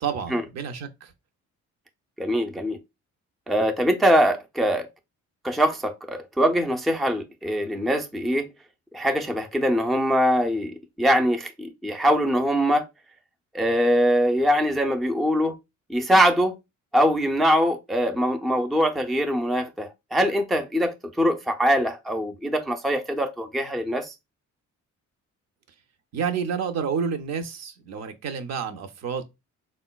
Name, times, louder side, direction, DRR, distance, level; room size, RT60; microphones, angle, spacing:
voice 1, 0.0-1.1 26.1-29.2, right 6 dB, 60° right, 0.5 m, -29 dB
voice 2, 2.2-2.8 3.5-4.9 5.4-8.5 8.9-12.9 13.5-15.6 15.9-16.6 16.9-24.1, equal, ahead, 0.3 m, -23 dB
3.6 x 2.1 x 2.2 m
cardioid pair, 90°, 30 cm